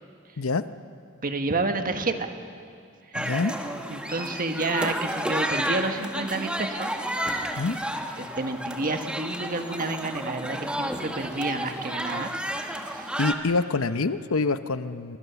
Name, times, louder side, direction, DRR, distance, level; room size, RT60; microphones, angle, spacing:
voice 1, 1.2-2.3 3.9-6.9 8.2-12.3 12.8-13.2, right 3 dB, 40° right, 7 dB, 1.5 m, -29 dB
sound 1, 3.1-13.3, right 1 dB, 5° right, 1.3 m, -31 dB
voice 2, 3.2-3.5 7.6-7.8 13.2-15.2, left 3 dB, 80° left, 12 dB, 0.9 m, -26 dB
26.0 x 23.5 x 7.1 m, 2.3 s
head